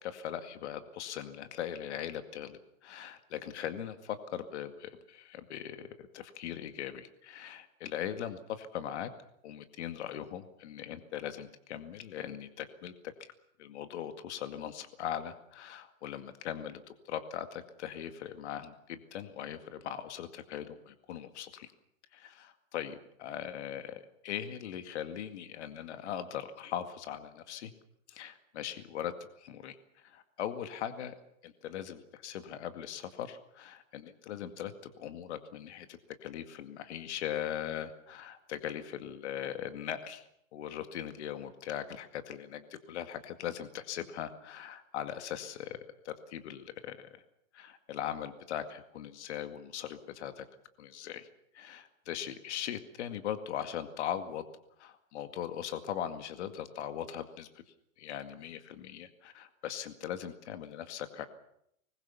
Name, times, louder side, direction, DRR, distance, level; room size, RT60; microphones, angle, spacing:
voice 1, 0.0-9.1 9.4-12.9 13.2-13.3 13.6-21.7 22.1-27.7 28.1-29.1 29.4-29.8 30.0-31.2 31.4-45.8 46.0-47.1 47.5-50.5 50.8-51.3 51.5-54.4 54.8-57.5 58.0-61.2, left 10 dB, 55° left, 8 dB, 2.2 m, -40 dB
24.5 x 21.0 x 7.1 m, 0.74 s
hypercardioid pair, 150°, 41 cm